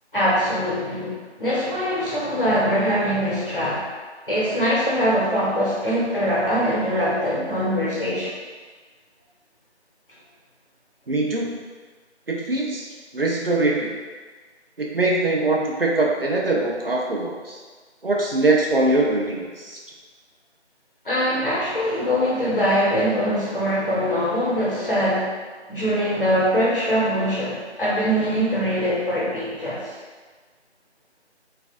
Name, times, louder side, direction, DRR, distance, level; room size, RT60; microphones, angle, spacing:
voice 1, 0.1-3.9 4.3-8.3 21.0-25.3 25.7-30.0, equal, 50° left, -7 dB, 1.0 m, -22 dB
voice 2, 11.1-11.5 12.3-12.9 13.1-13.9 14.8-17.6 18.0-19.8, right 2 dB, 55° right, -1 dB, 0.5 m, -22 dB
3.2 x 2.5 x 2.4 m, 1.4 s
figure-of-eight pair, 170°, 34 cm